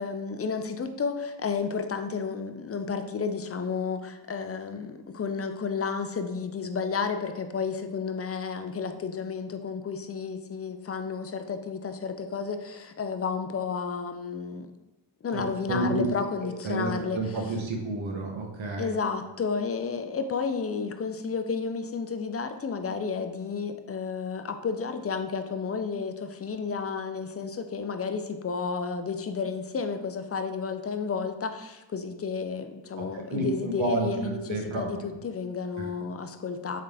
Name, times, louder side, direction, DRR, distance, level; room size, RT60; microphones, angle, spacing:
voice 1, 0.0-14.7 15.2-17.2 18.8-36.8, left 5 dB, 30° left, 8 dB, 0.4 m, -32 dB
voice 2, 15.3-16.1 16.6-18.9 33.0-34.9 35.8-35.9, right 2 dB, 65° right, 1 dB, 1.0 m, -30 dB
3.9 x 3.3 x 3.3 m, 0.99 s
cardioid pair, 60°, 49 cm